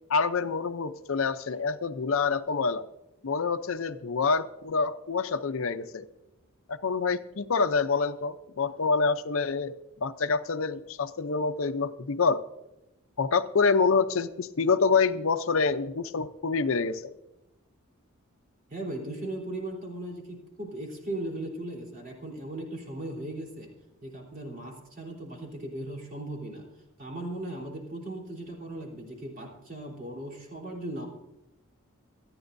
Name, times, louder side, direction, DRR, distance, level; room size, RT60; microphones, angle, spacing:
voice 1, 0.1-2.8 3.2-6.1 6.7-12.4 13.2-17.1, left 4 dB, 70° left, 11 dB, 0.6 m, -27 dB
voice 2, 18.7-23.7 24.0-26.7 27.0-31.1, right 1 dB, 40° right, -1 dB, 3.6 m, -37 dB
26.5 x 9.9 x 2.6 m, 0.93 s
head